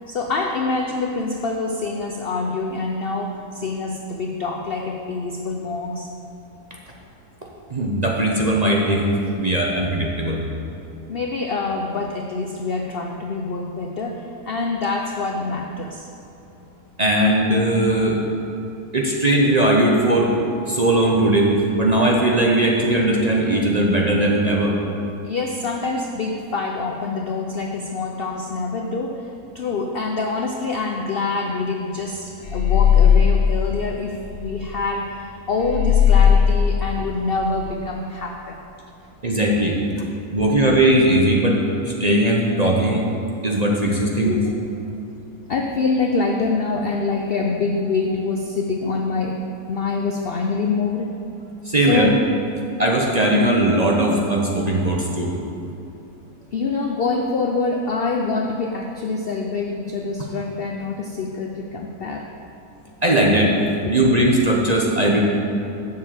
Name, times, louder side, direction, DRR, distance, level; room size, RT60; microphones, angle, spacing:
voice 1, 0.1-6.1 11.1-16.1 25.2-38.6 40.4-40.5 44.2-44.5 45.5-49.4 49.7-51.1 51.9-52.1 55.6-55.7 56.5-62.3 63.9-64.0, left 3 dB, 60° left, 2 dB, 0.6 m, -25 dB
voice 2, 7.7-9.1 9.4-10.4 17.0-18.2 18.9-20.4 20.7-24.8 39.2-39.8 40.3-43.1 43.4-44.4 51.6-52.1 52.8-55.3 63.0-63.6 63.9-65.2, right 1 dB, 35° right, -2 dB, 0.7 m, -19 dB
sound 1, 32.4-34.6 35.6-37.6, left 7 dB, 80° left, 1.9 m, -17 dB
7.3 x 6.6 x 7.5 m, 2.8 s
omnidirectional pair, 1.7 m